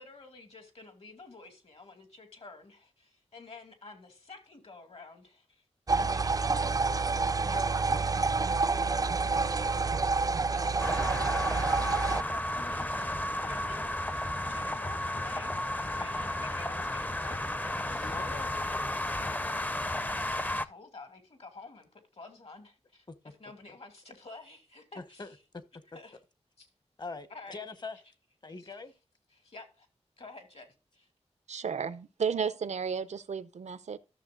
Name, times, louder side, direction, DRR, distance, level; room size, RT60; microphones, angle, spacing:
voice 1, 0.0-5.6 5.9-8.8 10.4-11.1 12.2-18.2 19.9-20.1 20.4-25.4 25.7-26.2 26.6-26.7 27.3-27.6 28.5-28.7 29.3-29.9 30.2-31.1, left 3 dB, 65° left, 2.3 m, -51 dB
sound 1, 5.9-12.2, right 4 dB, 35° right, 0.4 m, -28 dB
sound 2, 10.8-20.7, left 1 dB, 15° left, 0.6 m, -33 dB
voice 2, 18.0-18.5 23.1-23.2 25.0-25.3 27.0-28.0 28.4-28.9, left 3 dB, 40° left, 1.0 m, -42 dB
voice 3, 31.5-34.0, right 6 dB, 90° right, 0.6 m, -33 dB
14.0 x 6.6 x 2.4 m
wide cardioid pair, 70°, 11 cm